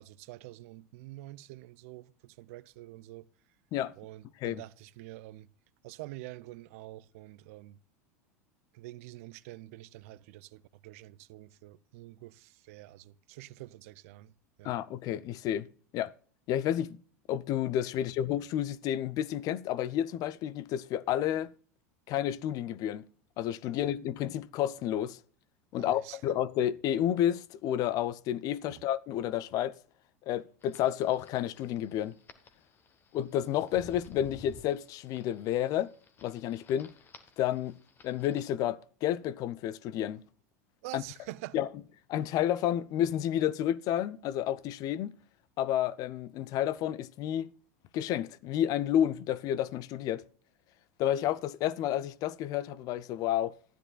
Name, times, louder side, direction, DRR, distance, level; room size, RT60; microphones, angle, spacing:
voice 1, 0.0-3.3 4.0-5.5 5.8-7.8 8.7-14.3 14.6-14.7 23.7-23.8 25.7-26.2 28.7-28.9 40.8-41.6, right 17 dB, 65° right, 0.4 m, -47 dB
voice 2, 14.6-15.7 15.9-16.1 16.5-17.0 17.3-21.5 22.1-23.0 23.4-25.2 25.7-29.8 30.3-32.2 33.1-35.9 36.2-36.9 37.4-37.8 38.0-40.2 40.9-41.0 41.5-41.7 42.1-45.2 45.6-47.5 47.9-50.2 51.0-53.5, left 11 dB, 50° left, 0.5 m, -30 dB
sound 1, 30.6-38.5, left 3 dB, 25° left, 1.0 m, -55 dB
13.5 x 9.8 x 2.3 m
hypercardioid pair, 90°, 8 cm